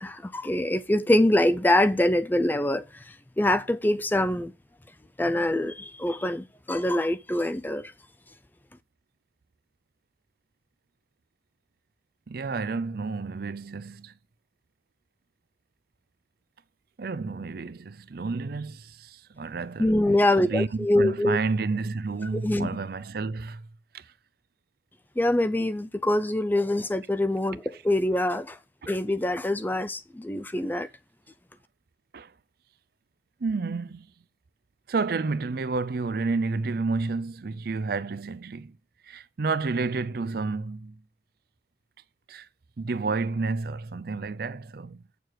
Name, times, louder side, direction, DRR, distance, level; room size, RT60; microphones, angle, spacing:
voice 1, 0.0-4.5 5.2-7.9 19.8-21.4 22.4-22.7 25.2-28.6 28.9-30.9, left 1 dB, 10° left, 0.4 m, -24 dB
voice 2, 12.3-14.1 17.0-19.9 20.4-23.7 23.9-24.1 32.1-32.3 33.4-34.1 34.9-38.8 39.0-41.0 42.3-42.5 42.8-45.0, right 4 dB, 55° right, 0.5 m, -30 dB
7.8 x 6.8 x 4.7 m
head